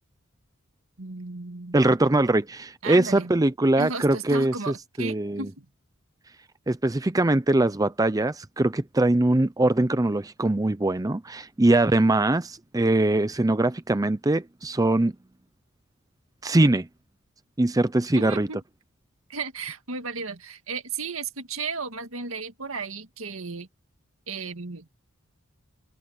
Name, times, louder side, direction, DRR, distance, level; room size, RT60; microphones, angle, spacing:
voice 1, 1.0-1.8 2.8-3.3 3.8-5.7 18.1-18.6 19.3-23.7 24.3-24.9, right 4 dB, 75° right, 2.0 m, -34 dB
voice 2, 1.7-4.5 5.0-5.4 6.7-15.1 16.4-16.9 17.6-18.5, right 2 dB, 15° right, 0.6 m, -22 dB
head